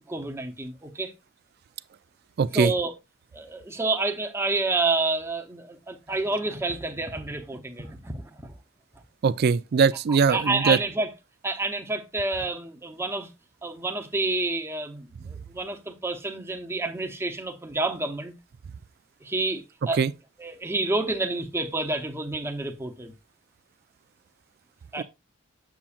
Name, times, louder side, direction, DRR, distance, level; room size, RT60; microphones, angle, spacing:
voice 1, 0.1-1.1 2.5-2.9 3.3-8.5 10.1-11.1 11.4-13.3 13.6-15.1 15.5-18.3 19.2-20.0 20.4-23.1 24.9-25.0, right 2 dB, 10° right, 0.8 m, -29 dB
voice 2, 2.4-2.7 9.2-10.8 20.0-20.1 25.0-25.1, right 5 dB, 50° right, 0.3 m, -21 dB
7.4 x 7.1 x 2.4 m
head